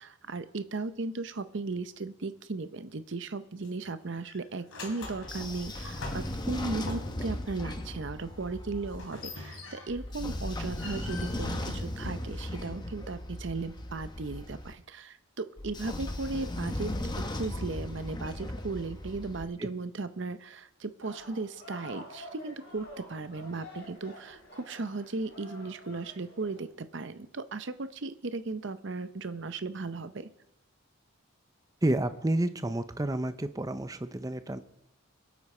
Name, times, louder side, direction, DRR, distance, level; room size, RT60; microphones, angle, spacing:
voice 1, 0.0-16.9 17.2-30.3, right 3 dB, 55° right, 12 dB, 0.7 m, -36 dB
sound 1, 3.6-3.9 4.2-7.4 8.9-10.1 10.5-12.4, left 2 dB, 75° left, 3.0 m, -44 dB
Train / Sliding door, 5.0-9.0 9.9-14.7 15.6-19.4, left 1 dB, 20° left, 0.8 m, -37 dB
sound 2, 21.0-26.6, equal, 55° left, 5.0 m, -48 dB
voice 2, 31.8-34.6, right 1 dB, 15° right, 11 dB, 0.6 m, -30 dB
24.0 x 8.3 x 4.3 m, 0.87 s
head